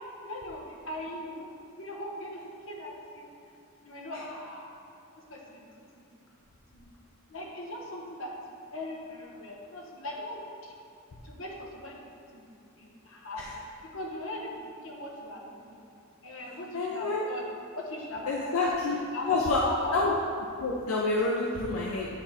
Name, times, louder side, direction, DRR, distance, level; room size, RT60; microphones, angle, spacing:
voice 1, 0.2-1.5 1.8-2.4 2.7-3.3 3.8-4.7 5.3-6.1 6.7-6.9 7.3-8.4 8.7-10.7 11.2-12.0 12.3-13.4 13.9-15.8 16.2-17.5 17.7-20.0, left 1 dB, 65° left, -2 dB, 1.1 m, -40 dB
voice 2, 16.7-17.2 18.3-19.0 19.3-19.6 19.9-20.1 20.6-22.1, left 3 dB, 85° left, -3 dB, 0.6 m, -27 dB
9.5 x 3.4 x 4.2 m, 2.5 s
head